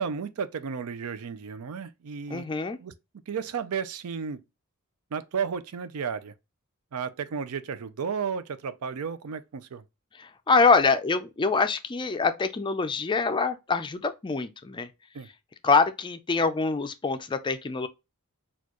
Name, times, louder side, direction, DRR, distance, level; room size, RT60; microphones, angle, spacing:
voice 1, 0.0-2.4 2.8-2.9 3.3-4.4 5.1-6.3 6.9-9.8 15.1-15.3, right 6 dB, 70° right, 0.4 m, -33 dB
voice 2, 2.3-2.8 10.2-14.9 15.6-17.9, left 4 dB, 20° left, 0.4 m, -25 dB
4.3 x 2.4 x 2.9 m
head